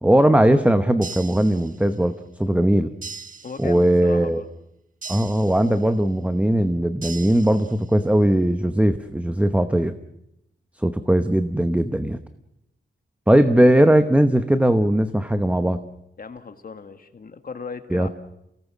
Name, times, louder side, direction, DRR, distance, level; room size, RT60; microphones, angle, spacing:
voice 1, 0.0-2.9 3.6-4.4 5.1-9.9 10.8-12.2 13.3-15.8 17.9-18.1, right 1 dB, 5° right, 10 dB, 0.9 m, -19 dB
sound 1, 1.0-2.1 3.0-4.1 5.0-6.1 7.0-8.1, right 4 dB, 45° right, 1.2 m, -40 dB
voice 2, 3.4-4.5 16.2-18.1, left 5 dB, 50° left, 8 dB, 1.7 m, -37 dB
29.0 x 18.0 x 7.4 m, 0.83 s
wide cardioid pair, 155°, 20 cm